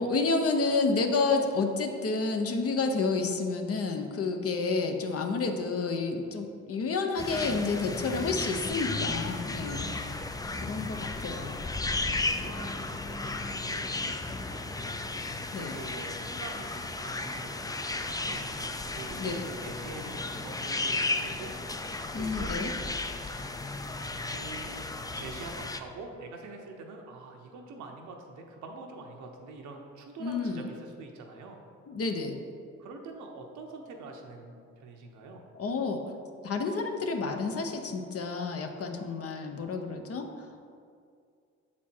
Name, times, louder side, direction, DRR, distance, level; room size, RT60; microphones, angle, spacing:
voice 1, 0.0-9.9 10.6-11.6 15.5-15.8 19.2-19.4 22.1-22.7 30.2-30.7 31.9-32.4 35.6-36.0 36.4-40.6, left 4 dB, 55° left, 5 dB, 0.8 m, -30 dB
sound 1, 7.2-25.8, left 2 dB, 15° left, 0.4 m, -34 dB
voice 2, 9.6-9.9 12.2-15.0 15.5-21.6 22.1-22.5 24.2-24.8 25.1-31.6 32.8-35.4, right 3 dB, 80° right, 2 dB, 0.9 m, -45 dB
7.1 x 4.3 x 4.4 m, 2.3 s
supercardioid pair, 65°, 29 cm